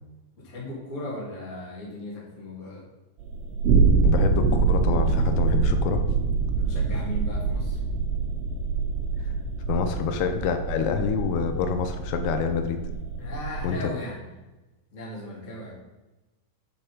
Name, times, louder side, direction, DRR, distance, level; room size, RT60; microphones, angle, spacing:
voice 1, 0.4-2.8 6.5-7.8 13.2-14.2 14.9-15.7, left 1 dB, 35° left, -4 dB, 1.2 m, -37 dB
sound 1, 3.2-13.7, right 4 dB, 75° right, 3.5 m, -25 dB
voice 2, 4.0-6.0 9.7-12.8 13.6-13.9, left 6 dB, 80° left, 7 dB, 3.4 m, -27 dB
9.9 x 5.8 x 5.1 m, 1.1 s
omnidirectional pair, 6.0 m